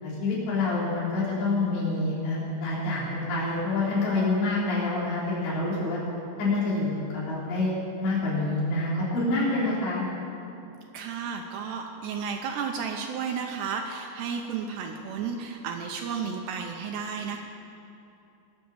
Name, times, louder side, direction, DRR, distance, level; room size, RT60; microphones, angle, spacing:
voice 1, 0.0-6.0 6.4-10.0, left 2 dB, 70° left, -7 dB, 5.6 m, -27 dB
voice 2, 10.9-17.4, right 6 dB, 80° right, 3 dB, 2.7 m, -33 dB
21.0 x 7.5 x 7.1 m, 2.8 s
omnidirectional pair, 5.2 m